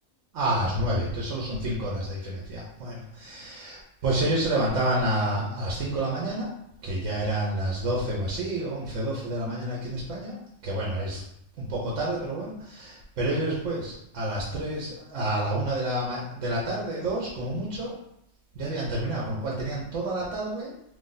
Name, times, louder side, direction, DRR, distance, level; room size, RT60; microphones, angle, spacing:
voice 1, 0.3-6.5 6.8-10.4 10.6-11.2 11.6-17.9 18.5-20.7, right 1 dB, 80° right, -4 dB, 1.1 m, -29 dB
2.8 x 2.6 x 3.8 m, 0.76 s
omnidirectional pair, 1.3 m